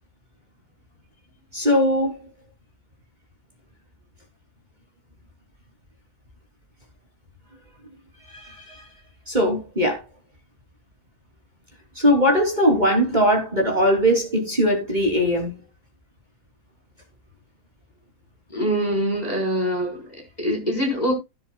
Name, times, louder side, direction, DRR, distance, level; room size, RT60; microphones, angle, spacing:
voice 1, 1.5-2.2 8.3-8.8 9.3-10.0 12.0-15.5, equal, 20° right, 3.5 m, -20 dB
voice 2, 18.5-21.1, equal, 20° left, 4.7 m, -24 dB
16.0 x 9.0 x 2.3 m
omnidirectional pair, 2.3 m